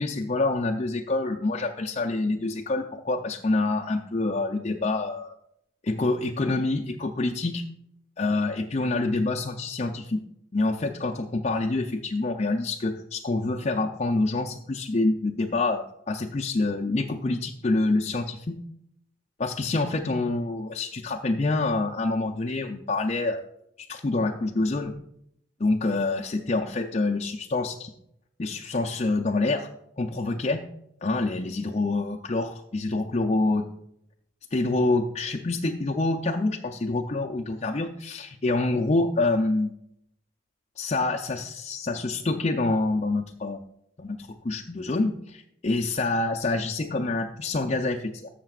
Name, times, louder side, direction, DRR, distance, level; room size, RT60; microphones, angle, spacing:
voice 1, 0.0-5.3 5.8-7.6 8.2-10.2 10.5-18.6 19.4-23.5 23.9-24.9 25.6-27.9 28.4-29.7 30.0-30.6 31.0-33.7 34.5-39.7 40.8-43.6 44.0-44.2 44.4-48.3, left 2 dB, 35° left, 1 dB, 0.5 m, -26 dB
13.5 x 6.7 x 2.4 m, 0.74 s
head